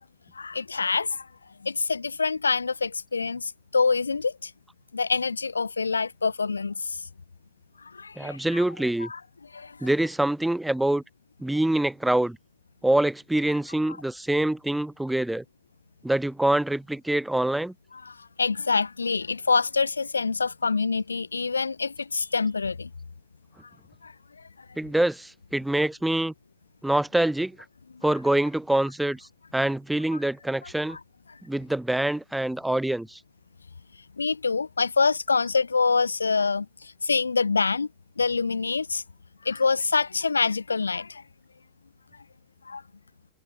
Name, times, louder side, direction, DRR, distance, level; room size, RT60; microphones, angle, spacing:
voice 1, 0.3-1.3 1.6-4.5 4.9-7.0 7.8-8.6 9.0-9.2 9.5-9.9 18.1-22.9 24.0-24.1 30.9-31.0 34.2-37.9 38.2-39.0 39.4-41.2 42.7-42.8, left 4 dB, 75° left, 3.1 m, -26 dB
voice 2, 8.2-9.1 9.8-11.0 11.4-12.4 12.8-15.4 16.0-17.7 24.8-26.3 26.8-27.6 28.0-31.0 31.5-33.2, right 1 dB, 5° right, 2.4 m, -25 dB
figure-of-eight pair, 90°, 0 cm